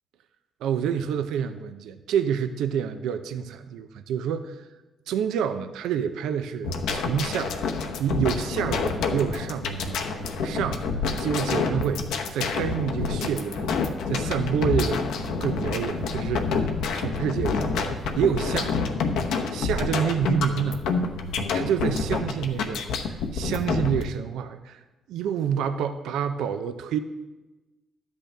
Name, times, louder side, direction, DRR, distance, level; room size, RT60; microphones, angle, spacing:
voice 1, 0.6-4.6 5.1-7.6 8.0-10.0 10.4-10.9 11.2-12.1 12.3-13.7 14.1-15.1 15.4-16.7 16.9-17.7 18.2-18.8 19.5-20.8 21.5-22.8 23.1-24.8 25.1-27.0, right 8 dB, 85° right, 9 dB, 0.5 m, -28 dB
sound 1, 6.6-24.0, left 4 dB, 85° left, 0.9 m, -28 dB
12.0 x 8.4 x 3.3 m, 1.1 s
cardioid pair, 90°, 0 cm